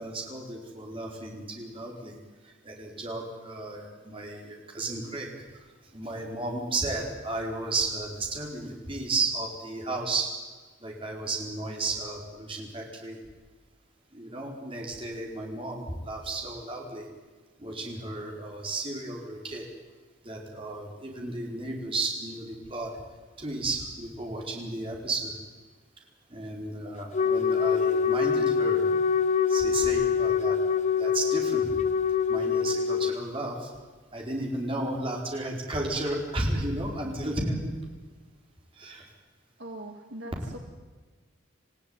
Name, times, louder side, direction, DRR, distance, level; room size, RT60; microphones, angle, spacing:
voice 1, 0.0-2.2 2.6-5.3 5.9-10.3 10.8-13.2 14.1-17.0 17.6-19.7 20.2-23.0 23.4-25.3 26.3-28.9 29.5-31.7 32.3-33.7 34.1-37.7 38.8-39.1, right 2 dB, 25° right, 0 dB, 4.7 m, -33 dB
Wind instrument woodwind instrument, 27.1-33.2, left 6 dB, 35° left, 0.7 m, -25 dB
voice 2, 39.6-40.6, right 1 dB, 60° right, 3 dB, 2.0 m, -41 dB
27.5 x 16.0 x 9.8 m, 1.3 s
head